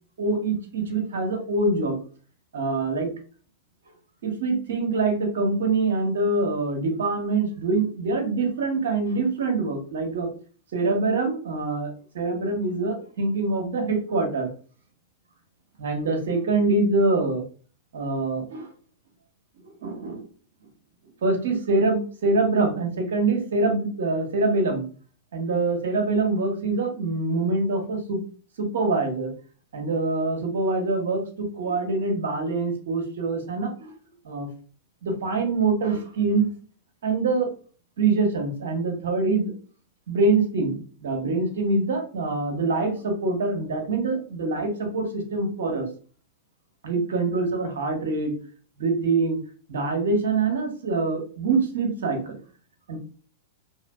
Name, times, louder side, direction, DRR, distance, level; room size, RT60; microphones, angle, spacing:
voice 1, 0.2-2.0 2.5-3.1 4.2-10.3 10.7-14.5 15.8-17.4 17.9-18.7 19.6-20.3 21.2-24.9 25.3-28.2 28.6-29.3 29.7-33.9 34.2-34.5 35.0-36.5 37.0-37.5 38.0-39.5 40.1-45.9 46.8-48.3 48.8-49.4 49.7-52.4 52.9-53.0, right 3 dB, 80° right, 4 dB, 1.0 m, -24 dB
3.1 x 2.4 x 2.2 m, 0.40 s
hypercardioid pair, 120°, 0 cm